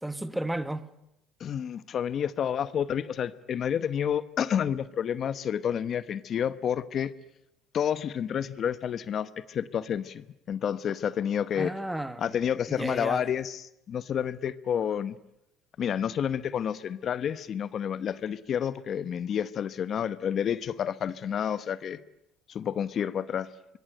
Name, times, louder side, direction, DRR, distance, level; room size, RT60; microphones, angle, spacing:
voice 1, 0.0-0.9 11.6-12.3 12.7-13.2, right 1 dB, 5° right, 1.3 m, -33 dB
voice 2, 1.4-7.1 7.7-11.7 12.2-15.2 15.8-22.0 22.5-23.5, left 8 dB, 45° left, 1.0 m, -30 dB
25.0 x 22.5 x 9.1 m
cardioid pair, 115°, 0 cm